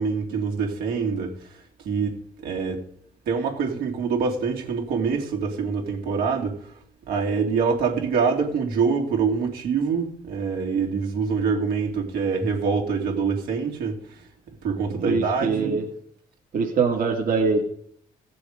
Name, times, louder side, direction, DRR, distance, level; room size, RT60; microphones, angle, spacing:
voice 1, 0.0-1.5 1.8-2.1 2.4-2.8 3.3-6.6 7.1-14.0 14.6-15.7, right 5 dB, 85° right, 3.0 m, -25 dB
voice 2, 15.0-15.9 16.5-17.6, right 4 dB, 65° right, 2.2 m, -23 dB
17.0 x 6.9 x 5.1 m
supercardioid pair, 55°, 15 cm